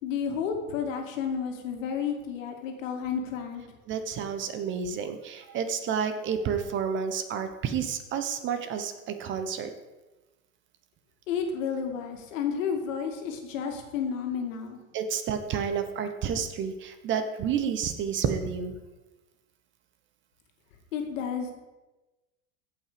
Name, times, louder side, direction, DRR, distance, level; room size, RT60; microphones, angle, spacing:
voice 1, 0.0-3.7 11.3-14.8 20.9-21.5, left 7 dB, 70° left, 4 dB, 2.3 m, -31 dB
voice 2, 3.9-9.7 14.9-18.7, right 7 dB, 30° right, 8 dB, 0.9 m, -30 dB
15.5 x 5.9 x 5.1 m, 1.1 s
supercardioid pair, 135°, 40 cm